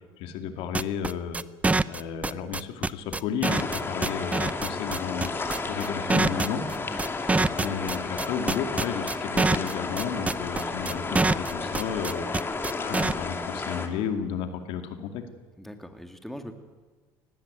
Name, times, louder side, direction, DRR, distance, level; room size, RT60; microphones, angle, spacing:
voice 1, 0.2-1.4 1.9-6.6 7.5-12.3 12.8-15.2, left 7 dB, 70° left, 7 dB, 2.4 m, -33 dB
sound 1, 0.7-13.1, right 3 dB, 15° right, 0.6 m, -25 dB
sound 2, 3.4-13.9, left 3 dB, 25° left, 2.6 m, -32 dB
voice 2, 15.6-16.5, equal, 5° left, 6 dB, 2.6 m, -41 dB
19.0 x 16.0 x 9.2 m, 1.4 s
supercardioid pair, 85°, 10 cm